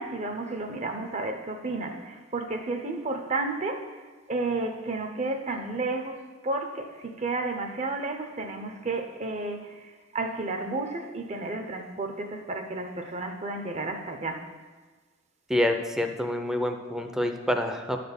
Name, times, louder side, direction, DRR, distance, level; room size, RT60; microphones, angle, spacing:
voice 1, 0.0-4.0 4.3-14.5, right 2 dB, 35° right, 5 dB, 0.7 m, -32 dB
voice 2, 15.5-18.0, left 1 dB, 5° right, 5 dB, 0.6 m, -27 dB
11.0 x 4.2 x 7.0 m, 1.4 s
head